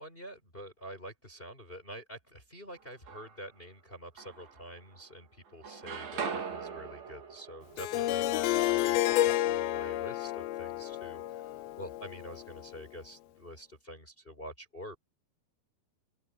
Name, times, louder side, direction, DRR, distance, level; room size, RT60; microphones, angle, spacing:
voice 1, 0.0-15.0, equal, 15° left, 5.2 m, -47 dB
sound 1, 2.7-3.6 4.2-5.2 5.4-9.4, right 6 dB, 65° right, 5.0 m, -42 dB
Harp, 7.8-12.7, left 14 dB, 80° left, 2.7 m, -30 dB
open air
omnidirectional pair, 4.4 m